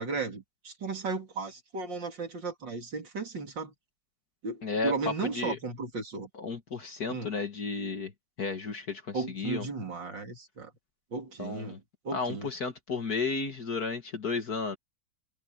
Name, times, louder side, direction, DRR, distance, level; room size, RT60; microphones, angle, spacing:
voice 1, 0.0-3.7 4.4-6.3 7.1-7.3 9.1-10.7 11.1-11.8 12.0-12.5, right 4 dB, 55° right, 3.9 m, -35 dB
voice 2, 4.6-5.6 6.3-8.1 8.4-9.7 11.4-11.8 12.1-14.8, left 4 dB, 45° left, 2.2 m, -33 dB
omnidirectional pair, 2.3 m